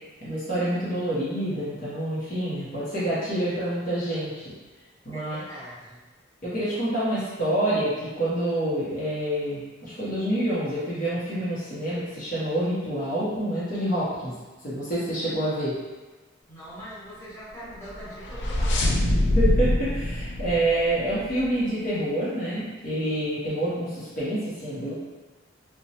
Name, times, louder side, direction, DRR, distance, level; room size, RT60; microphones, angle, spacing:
voice 1, 0.2-4.4 5.0-5.4 6.4-14.3 14.6-15.7 19.4-24.9, right 1 dB, 45° left, -10 dB, 0.7 m, -27 dB
voice 2, 5.1-6.1 16.5-18.8, right 1 dB, 15° left, -12 dB, 0.9 m, -42 dB
sound 1, 17.8-21.5, left 1 dB, 65° left, 0.4 m, -24 dB
2.9 x 2.1 x 2.7 m, 1.2 s
head